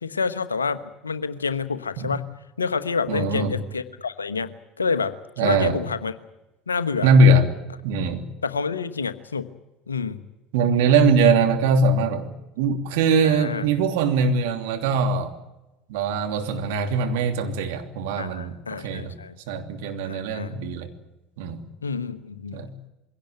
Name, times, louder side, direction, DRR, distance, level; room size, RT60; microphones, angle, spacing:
voice 1, 0.0-2.3 2.6-6.1 6.7-7.1 8.4-9.5 9.9-10.2 13.2-13.6 18.2-19.4 20.0-20.5 21.8-22.6, left 5 dB, 85° left, 13 dB, 1.2 m, -28 dB
voice 2, 3.1-3.5 5.4-5.8 7.0-7.5 7.8-8.3 10.5-15.3 15.9-19.1 19.5-20.9 21.4-21.6 22.5-22.7, right 3 dB, 65° right, 6 dB, 2.9 m, -21 dB
23.0 x 17.0 x 9.2 m, 1.0 s
figure-of-eight pair, 70°, 0 cm